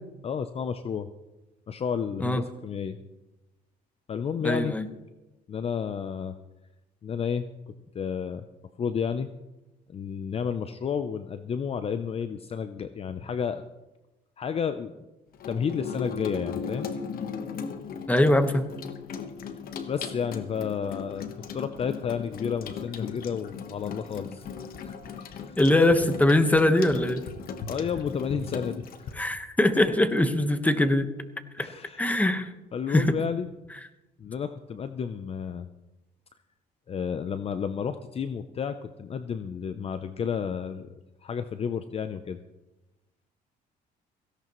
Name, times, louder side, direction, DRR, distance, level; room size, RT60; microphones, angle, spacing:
voice 1, 0.2-1.1 1.7-3.0 4.1-4.8 5.5-6.3 7.0-7.4 7.9-8.4 8.8-9.3 9.9-13.6 14.4-15.0 15.5-16.9 19.9-24.4 24.8-25.6 27.7-29.1 31.6-32.1 32.7-33.5 34.2-35.7 36.9-42.4, left 7 dB, 35° left, 10 dB, 0.6 m, -31 dB
voice 2, 4.4-4.9 18.1-18.6 25.6-27.2 29.2-31.1 31.6-31.7 32.0-32.5 32.9-33.2, left 1 dB, 10° left, 8 dB, 1.2 m, -22 dB
Water tap faucet / Sink (filling or washing), 15.3-29.1, left 6 dB, 60° left, 1.2 m, -37 dB
17.5 x 16.5 x 3.1 m, 1.0 s
cardioid pair, 110°, 17 cm